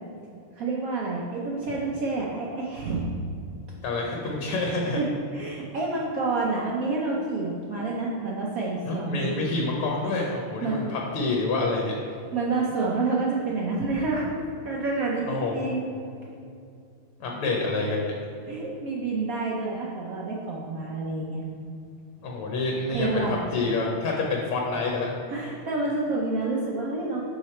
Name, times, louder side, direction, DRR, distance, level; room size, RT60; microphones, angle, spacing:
voice 1, 0.5-3.0 4.2-4.3 4.9-9.3 10.6-10.8 12.3-14.3 14.6-15.9 18.5-21.4 22.9-23.4 25.3-27.3, right 3 dB, 80° right, -3 dB, 0.7 m, -28 dB
voice 2, 3.8-5.0 8.9-11.9 15.3-15.7 17.2-18.1 22.2-25.1, left 3 dB, 85° left, -1 dB, 1.7 m, -27 dB
6.1 x 4.9 x 4.3 m, 2.5 s
omnidirectional pair, 2.4 m